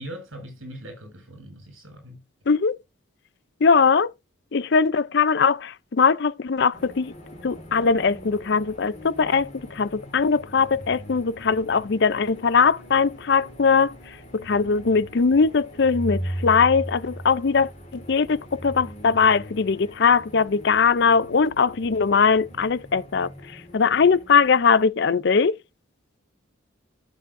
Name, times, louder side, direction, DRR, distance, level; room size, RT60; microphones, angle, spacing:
voice 1, 0.0-2.2, right 1 dB, 80° right, 6.4 m, -40 dB
voice 2, 2.5-2.8 3.6-4.1 4.5-7.1 7.4-14.0 14.3-23.3 23.7-25.6, left 5 dB, 55° left, 0.5 m, -20 dB
sound 1, 6.7-24.9, equal, 35° left, 3.4 m, -39 dB
14.5 x 7.1 x 2.6 m
head